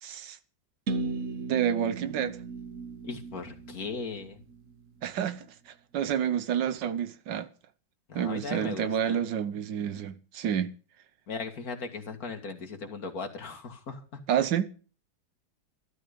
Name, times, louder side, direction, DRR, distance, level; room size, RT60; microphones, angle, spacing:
voice 1, 0.0-0.4 1.5-2.4 5.0-7.5 8.1-10.7 14.3-14.6, right 9 dB, 70° right, 1.5 m, -29 dB
sound 1, 0.9-4.7, right 3 dB, 50° right, 1.2 m, -36 dB
voice 2, 3.0-4.4 8.1-9.2 11.3-14.0, left 4 dB, 50° left, 2.4 m, -38 dB
13.5 x 12.5 x 5.2 m
omnidirectional pair, 2.1 m